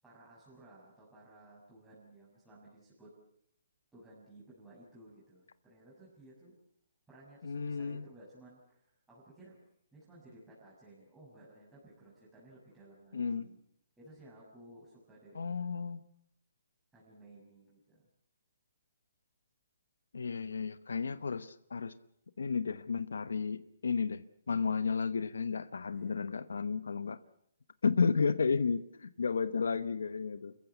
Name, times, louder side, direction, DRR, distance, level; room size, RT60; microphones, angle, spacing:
voice 1, 0.0-3.1 3.9-6.5 7.1-9.6 9.9-13.6 14.0-15.6 16.9-18.0 25.9-26.1 30.3-30.6, right 1 dB, 5° right, -7 dB, 6.4 m, -57 dB
voice 2, 7.4-8.1 13.1-13.5 15.3-16.0 20.1-21.9 22.4-27.2 27.8-30.5, left 5 dB, 85° left, 14 dB, 1.0 m, -33 dB
27.5 x 15.0 x 8.3 m, 0.73 s
hypercardioid pair, 160°, 0 cm